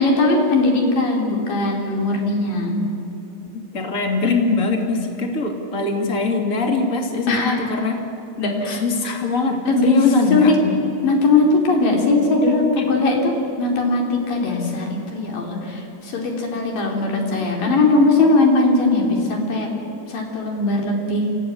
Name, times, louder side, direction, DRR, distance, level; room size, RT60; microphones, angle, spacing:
voice 1, 0.0-2.9 7.3-7.6 8.4-8.8 9.6-10.6 11.0-19.7 20.1-21.3, left 2 dB, 50° left, 1 dB, 4.5 m, -19 dB
voice 2, 3.5-8.0 8.7-10.7 12.8-12.9, left 3 dB, 35° left, 3 dB, 1.3 m, -22 dB
27.0 x 15.5 x 9.3 m, 2.7 s
omnidirectional pair, 5.3 m